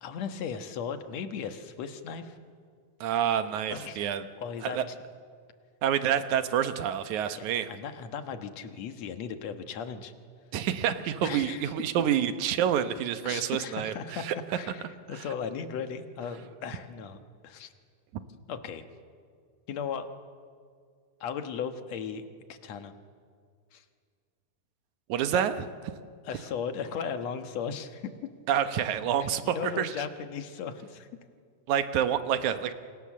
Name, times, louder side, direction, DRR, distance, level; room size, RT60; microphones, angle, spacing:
voice 1, 0.0-2.4 3.7-4.0 4.4-5.0 7.3-10.1 11.2-11.7 13.2-14.2 14.5-17.7 18.5-18.9 19.7-20.1 21.2-22.9 23.7-23.8 25.3-25.4 26.2-28.1 29.4-31.1, left 6 dB, 60° left, 8 dB, 2.3 m, -37 dB
voice 2, 3.0-4.2 4.6-4.8 5.8-7.7 10.5-14.4 18.1-18.2 25.1-25.5 28.5-29.9 31.7-32.7, right 9 dB, 70° right, 10 dB, 2.3 m, -28 dB
28.0 x 26.0 x 7.5 m, 2.1 s
omnidirectional pair, 3.8 m